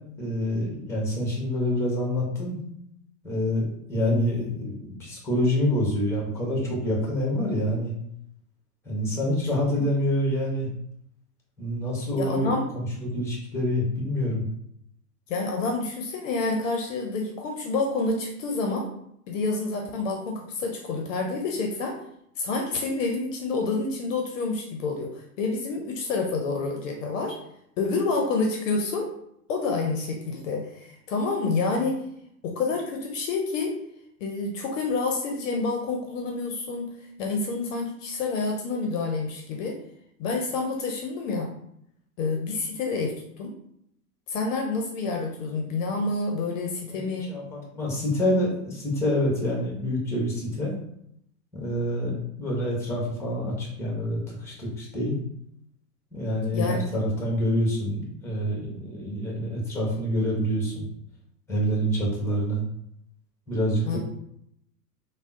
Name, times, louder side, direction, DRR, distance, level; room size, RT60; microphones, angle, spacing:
voice 1, 0.2-2.6 3.2-7.9 8.8-10.7 11.6-14.5 46.9-50.7 51.5-52.1 52.4-55.2 56.1-60.8 61.5-62.7 63.5-64.0, equal, 5° left, -2 dB, 0.8 m, -27 dB
voice 2, 12.2-12.7 15.3-18.9 19.3-22.0 22.4-27.4 27.8-29.1 29.5-32.0 32.4-33.8 34.2-39.8 40.2-41.5 42.2-43.5 44.3-47.3 56.5-56.8 63.9-64.0, left 3 dB, 55° left, 2 dB, 0.6 m, -28 dB
3.5 x 2.0 x 2.5 m, 0.73 s
hypercardioid pair, 110°, 48 cm